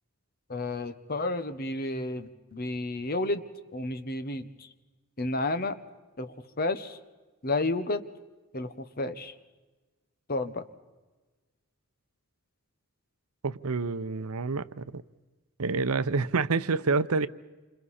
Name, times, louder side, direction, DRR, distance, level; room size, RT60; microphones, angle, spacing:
voice 1, 0.5-3.4 3.7-4.7 5.2-5.8 6.2-7.0 7.4-8.0 8.5-9.3 10.3-10.6, left 2 dB, 45° left, 1.1 m, -31 dB
voice 2, 13.4-15.0 15.6-17.3, right 4 dB, 85° right, 0.7 m, -28 dB
28.5 x 26.5 x 4.3 m
head